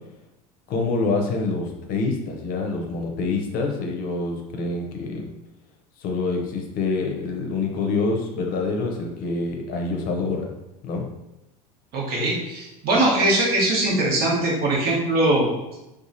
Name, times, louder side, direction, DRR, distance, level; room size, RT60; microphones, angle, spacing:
voice 1, 0.7-5.2 6.0-10.5 10.8-11.1, left 3 dB, 50° left, 2 dB, 0.6 m, -26 dB
voice 2, 11.9-15.5, right 1 dB, 55° right, -2 dB, 1.1 m, -21 dB
2.9 x 2.3 x 2.6 m, 0.95 s
hypercardioid pair, 85°, 19 cm